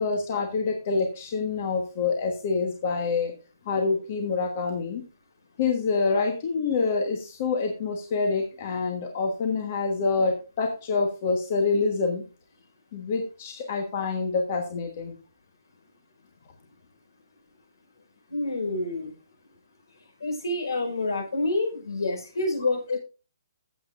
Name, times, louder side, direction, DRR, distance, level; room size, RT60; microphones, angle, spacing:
voice 1, 0.0-3.3 3.6-5.0 5.6-12.2 12.9-15.1, left 4 dB, 25° left, 3 dB, 1.3 m, -26 dB
voice 2, 18.3-19.1 20.2-23.0, left 2 dB, 75° left, 4 dB, 5.5 m, -28 dB
15.5 x 7.8 x 2.5 m, 0.33 s
hypercardioid pair, 175°, 2 cm